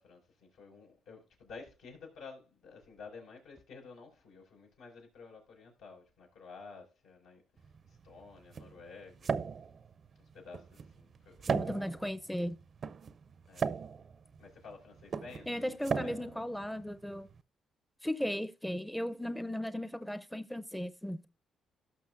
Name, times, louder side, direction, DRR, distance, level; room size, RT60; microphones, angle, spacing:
voice 1, 0.0-7.4 8.0-9.4 10.3-12.0 13.5-13.8 14.4-16.3, left 4 dB, 85° left, 5.3 m, -52 dB
sound 1, 7.6-17.4, right 6 dB, 50° right, 0.5 m, -38 dB
voice 2, 11.5-12.6 15.5-17.3 18.0-21.3, equal, 5° left, 0.6 m, -36 dB
17.5 x 6.1 x 2.5 m
cardioid pair, 90°, 0 cm